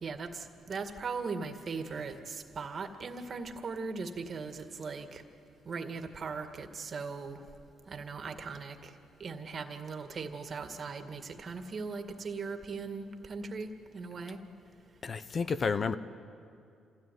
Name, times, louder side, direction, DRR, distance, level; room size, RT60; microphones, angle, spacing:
voice 1, 0.0-5.2 5.7-7.4 7.9-8.9 9.2-14.4, right 4 dB, 45° right, 6 dB, 2.0 m, -39 dB
voice 2, 15.0-16.0, left 5 dB, 45° left, 12 dB, 0.9 m, -30 dB
27.5 x 16.0 x 9.4 m, 2.4 s
cardioid pair, 90°, 0 cm